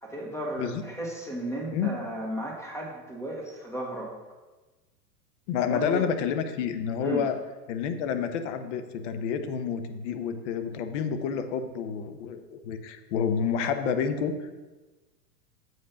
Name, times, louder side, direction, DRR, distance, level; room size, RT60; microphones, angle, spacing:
voice 1, 0.0-4.1 5.6-6.0 7.0-7.3, right 1 dB, 5° left, -1 dB, 1.9 m, -34 dB
voice 2, 5.5-7.4 7.7-14.5, left 7 dB, 45° left, 8 dB, 0.9 m, -29 dB
7.8 x 5.3 x 5.8 m, 1.2 s
figure-of-eight pair, 100°, 48 cm